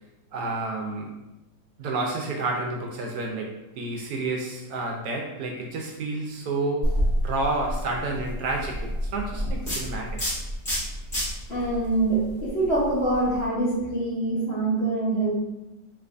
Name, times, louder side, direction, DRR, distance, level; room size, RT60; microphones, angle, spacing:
voice 1, 0.3-1.2 1.8-7.0 7.2-10.2, right 2 dB, 70° right, 1 dB, 1.0 m, -30 dB
sound 1, 6.8-13.4, equal, 30° left, 1.5 m, -29 dB
voice 2, 11.5-15.4, right 2 dB, 50° left, -7 dB, 0.9 m, -25 dB
3.8 x 3.3 x 2.5 m, 0.98 s
omnidirectional pair, 1.9 m